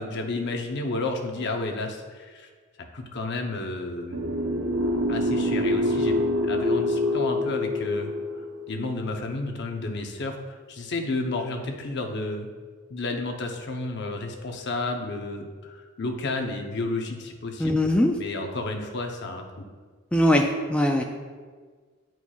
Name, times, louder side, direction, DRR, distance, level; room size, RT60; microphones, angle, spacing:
voice 1, 0.0-2.5 2.9-4.2 5.1-6.2 6.4-8.1 8.7-12.5 12.9-17.8 18.2-19.4, left 2 dB, 55° left, 3 dB, 0.7 m, -31 dB
sound 1, 4.1-9.2, left 1 dB, 80° right, 0.6 m, -26 dB
voice 2, 17.6-18.1 20.1-21.0, left 1 dB, 5° left, 2 dB, 0.3 m, -21 dB
9.8 x 4.5 x 2.3 m, 1.5 s
head